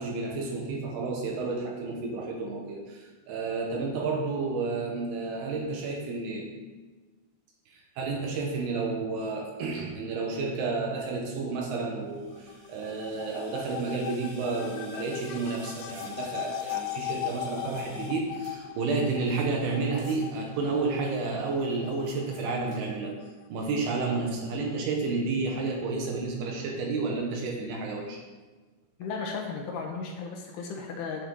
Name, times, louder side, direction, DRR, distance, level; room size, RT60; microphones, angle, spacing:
voice 1, 0.0-6.5 7.7-23.1 23.5-28.2, right 3 dB, 70° right, 0 dB, 2.6 m, -31 dB
sound 1, 12.0-22.9, right 1 dB, 50° right, 4.2 m, -53 dB
sound 2, 12.3-23.6, left 14 dB, 85° left, 2.5 m, -40 dB
voice 2, 29.0-31.2, left 5 dB, 70° left, 0 dB, 2.7 m, -35 dB
8.8 x 8.2 x 3.9 m, 1.3 s
omnidirectional pair, 5.6 m